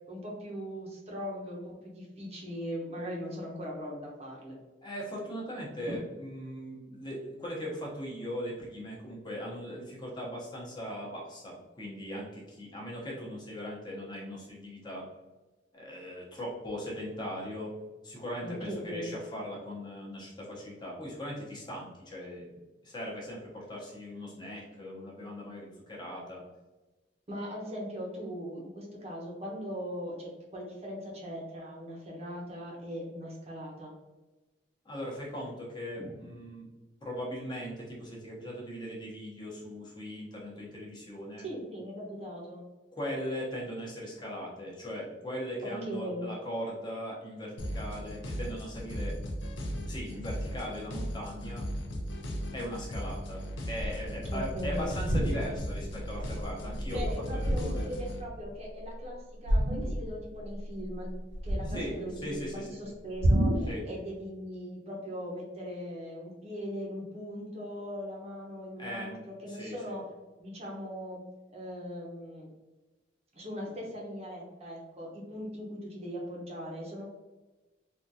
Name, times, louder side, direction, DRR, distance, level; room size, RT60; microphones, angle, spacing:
voice 1, 0.1-4.6 5.9-6.0 18.4-19.1 27.3-33.9 36.0-36.1 41.4-42.6 45.6-46.3 54.3-54.9 56.9-61.1 61.4-70.0 70.4-71.2 71.5-72.5 73.3-77.0, equal, 35° right, -2 dB, 0.8 m, -39 dB
voice 2, 4.8-15.0 15.7-17.7 18.0-22.6 22.8-26.4 34.8-36.7 37.0-41.5 43.0-49.1 49.8-51.6 52.5-57.9 61.7-62.7 63.7-63.8 68.8-69.2 69.5-70.0, equal, 25° left, -4 dB, 0.9 m, -39 dB
sound 1, 47.6-58.2, equal, 85° left, 0.6 m, -37 dB
sound 2, 53.8-54.2 54.9-55.8 56.2-56.4 56.7-58.0 59.5-60.3 60.5-62.2 63.2-63.8, right 1 dB, 80° right, 0.5 m, -29 dB
3.6 x 2.4 x 2.7 m, 1.1 s
head